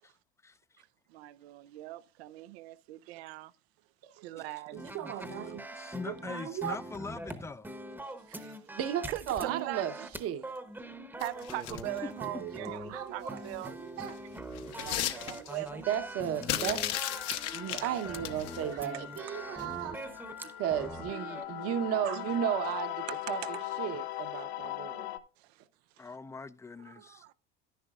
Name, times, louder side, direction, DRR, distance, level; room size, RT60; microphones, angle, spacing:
voice 1, 0.4-0.8 4.7-5.2 5.4-7.7 11.7-12.4 15.0-15.3 17.6-17.7 19.5-19.6 26.0-27.2, left 4 dB, 10° left, 0.4 m, -43 dB
voice 2, 1.1-3.5 4.2-4.8 8.4-8.6 9.1-10.1 11.2-13.8 14.7-15.9 22.0-22.2 23.1-23.7 25.4-25.6 26.9-27.3, right 17 dB, 90° right, 0.6 m, -41 dB
voice 3, 4.0-4.5 4.7-5.6 6.1-6.8 8.3-8.4 8.7-9.9 10.2-10.5 12.4-13.4 13.8-14.2 14.6-15.5 15.9-16.9 17.5-20.0 20.4-25.1, right 10 dB, 50° right, 1.0 m, -35 dB
sound 1, 4.8-21.5, right 1 dB, 5° right, 0.9 m, -43 dB
sound 2, 11.2-12.0 13.5-13.7 14.1-15.7 16.4-18.6 19.6-19.7 20.1-20.2, left 12 dB, 55° left, 0.9 m, -35 dB
sound 3, 16.9-25.2, left 13 dB, 85° left, 0.8 m, -40 dB
10.5 x 10.0 x 2.4 m
supercardioid pair, 110°, 31 cm